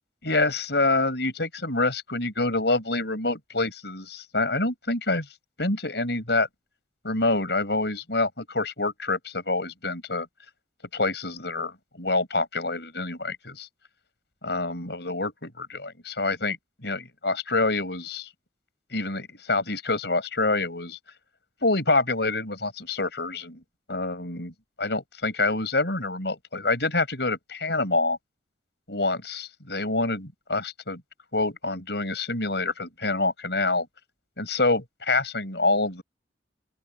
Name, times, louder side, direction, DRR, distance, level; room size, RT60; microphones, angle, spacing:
voice 1, 0.3-5.3 5.6-6.5 7.0-10.3 10.9-13.7 14.4-16.6 16.8-18.3 18.9-21.0 21.6-23.6 23.9-24.5 24.8-28.2 28.9-31.0 31.3-33.9 34.4-36.0, left 2 dB, 65° left, 7.3 m, -26 dB
open air
head